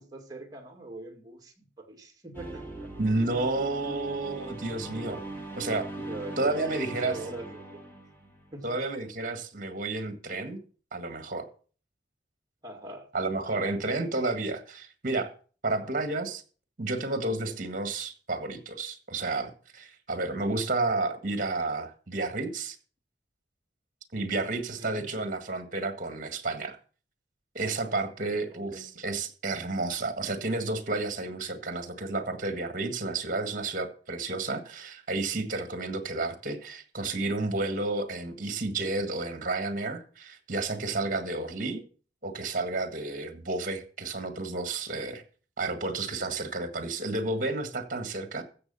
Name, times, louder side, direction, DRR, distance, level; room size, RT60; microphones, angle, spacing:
voice 1, 0.0-2.9 5.9-7.8 8.5-8.8 12.6-13.1 15.8-16.1 17.4-17.6 20.3-20.4 24.8-25.1 28.5-28.8, right 2 dB, 20° right, 2.2 m, -43 dB
sound 1, 2.3-8.8, right 2 dB, 10° left, 2.3 m, -41 dB
voice 2, 3.0-5.2 5.6-5.9 6.4-7.2 8.6-10.6 10.9-11.5 13.1-15.3 15.6-16.4 16.8-22.8 24.1-26.8 27.5-41.8 42.2-45.2 45.6-48.4, right 2 dB, 45° right, 1.6 m, -31 dB
14.5 x 6.9 x 5.5 m
head